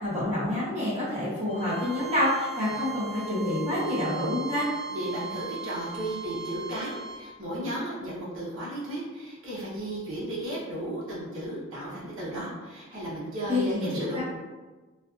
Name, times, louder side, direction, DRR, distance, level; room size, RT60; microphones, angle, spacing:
voice 1, 0.0-4.7 13.5-14.2, left 1 dB, 30° right, -10 dB, 0.8 m, -28 dB
Bowed string instrument, 1.5-7.2, right 6 dB, 30° left, 0.8 m, -38 dB
voice 2, 4.9-14.2, right 1 dB, 65° right, -7 dB, 0.7 m, -34 dB
2.4 x 2.4 x 2.4 m, 1.3 s
head